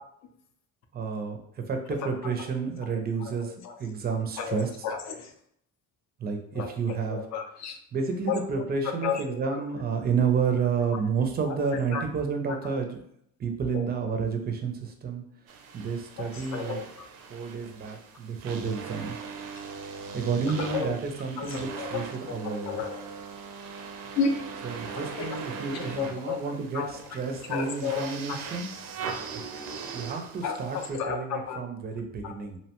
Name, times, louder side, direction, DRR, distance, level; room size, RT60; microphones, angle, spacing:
voice 1, 0.9-4.7 6.2-7.3 7.9-13.0 13.4-15.2 15.7-16.8 17.3-19.2 20.1-22.8 24.6-28.7 29.3-29.4 29.9-32.6, right 5 dB, 30° right, 0.4 m, -30 dB
voice 2, 3.4-3.8 4.4-5.3 6.6-6.7 7.1-7.8 8.3-8.4 8.8-9.6 11.5-11.6 11.9-12.0 13.7-13.8 16.2-16.9 20.6-21.0 21.4-22.4 22.6-23.0 24.2-24.3 25.1-25.3 25.7-26.9 27.5-28.6 30.4-31.6 32.2-32.3, left 6 dB, 55° left, 0.5 m, -32 dB
sound 1, 15.5-30.9, right 5 dB, 85° right, 0.5 m, -40 dB
2.7 x 2.1 x 2.8 m
cardioid pair, 130°, 34 cm